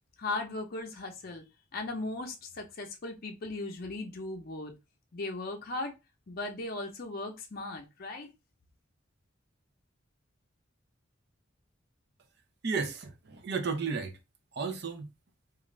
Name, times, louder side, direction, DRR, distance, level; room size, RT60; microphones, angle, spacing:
voice 1, 0.2-1.4 1.7-4.7 5.1-5.9 6.3-8.3, left 2 dB, 50° left, 0.6 m, -37 dB
voice 2, 12.6-14.2 14.5-15.1, right 5 dB, 55° right, 0.6 m, -33 dB
2.5 x 2.4 x 3.0 m
head